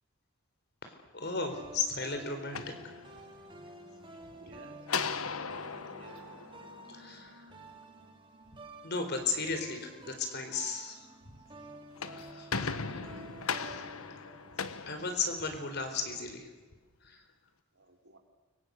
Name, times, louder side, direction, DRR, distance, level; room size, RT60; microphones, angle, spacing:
voice 1, 0.8-2.7 6.9-7.5 8.8-11.0 11.3-11.4 12.2-12.7 13.6-13.8 14.9-16.5 17.0-17.2, left 4 dB, 50° left, 6 dB, 4.2 m, -35 dB
sound 1, 1.5-16.2, right 1 dB, 20° right, 2.7 m, -51 dB
sound 2, 2.4-3.6 4.9-7.3 11.7-15.8, left 5 dB, 75° left, 1.3 m, -38 dB
voice 2, 4.3-4.9 5.9-6.5 12.9-13.4 17.7-18.2, right 1 dB, 60° right, 3 dB, 3.9 m, -54 dB
29.5 x 24.5 x 6.6 m, 1.3 s
head